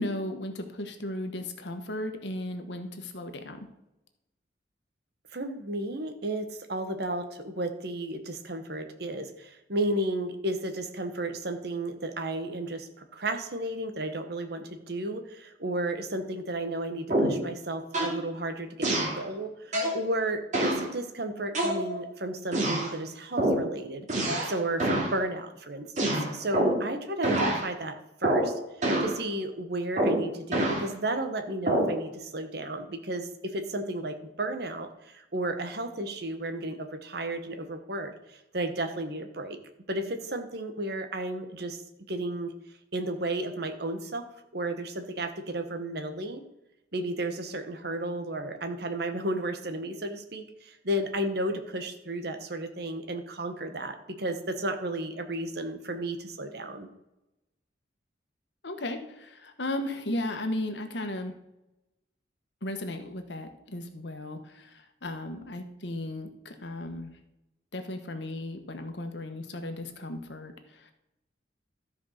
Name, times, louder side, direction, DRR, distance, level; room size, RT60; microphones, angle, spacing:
voice 1, 0.0-3.7 58.6-61.3 62.6-67.1 67.7-70.5, left 1 dB, 65° left, 7 dB, 1.4 m, -35 dB
voice 2, 5.3-28.6 29.0-39.6 39.9-41.8 42.1-42.5 42.9-44.3 44.5-46.4 46.9-56.9, right 1 dB, 55° right, 8 dB, 1.3 m, -33 dB
sound 1, 17.1-17.5 17.9-18.2 18.8-19.2 19.7-20.0 20.5-20.9 21.5-22.1 22.5-22.9 23.4-23.7 24.1-24.5 24.8-25.1 26.0-26.9 27.2-27.6 28.2-28.5 28.8-29.2 30.0-30.8 31.7-32.0, right 1 dB, 40° right, 2.6 m, -26 dB
13.0 x 5.2 x 6.5 m, 0.91 s
head